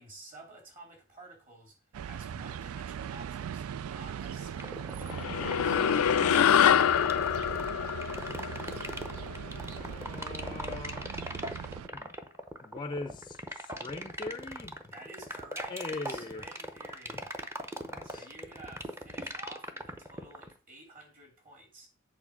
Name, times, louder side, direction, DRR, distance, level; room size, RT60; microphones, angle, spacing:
voice 1, 0.0-5.8 14.8-17.3 18.0-21.9, right 1 dB, 40° right, 3.0 m, -51 dB
sound 1, 1.9-11.9, right 8 dB, 85° right, 0.3 m, -40 dB
sound 2, 4.6-20.5, right 1 dB, 10° right, 0.7 m, -39 dB
sound 3, 5.1-9.8, left 9 dB, 85° left, 0.4 m, -26 dB
voice 2, 9.6-11.1 11.9-12.1 12.6-14.8 15.7-16.5 17.9-18.3, left 3 dB, 20° left, 0.4 m, -41 dB
8.4 x 3.8 x 6.2 m
head